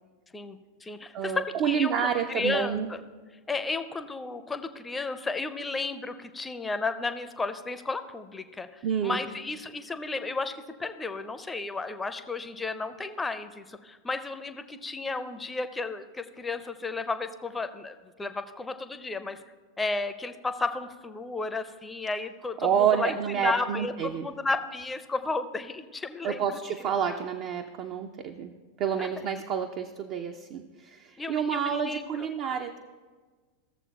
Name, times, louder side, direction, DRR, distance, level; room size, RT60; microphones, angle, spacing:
voice 1, 0.3-3.0 3.5-19.4 19.8-26.6 29.0-29.1 31.2-32.6, left 3 dB, 10° left, 10 dB, 0.5 m, -33 dB
voice 2, 1.1-2.9 8.8-9.2 22.6-24.3 26.2-28.5 28.8-32.8, right 8 dB, 40° right, 6 dB, 0.4 m, -29 dB
16.0 x 7.2 x 2.3 m, 1.4 s
figure-of-eight pair, 90°, 0 cm